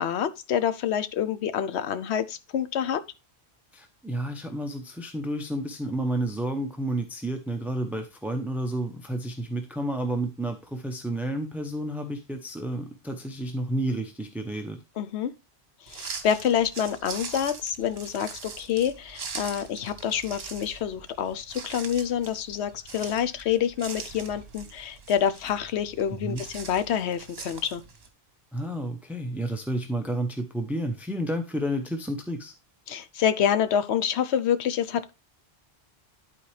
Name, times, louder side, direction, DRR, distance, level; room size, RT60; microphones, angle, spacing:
voice 1, 0.0-3.0 15.0-15.3 15.9-27.8 32.9-35.1, left 9 dB, 80° left, 1.0 m, -27 dB
voice 2, 3.7-14.8 26.2-26.4 28.5-32.5, right 1 dB, ahead, 0.5 m, -31 dB
sound 1, 15.9-28.1, right 5 dB, 70° right, 1.3 m, -42 dB
11.5 x 4.2 x 3.3 m
omnidirectional pair, 1.1 m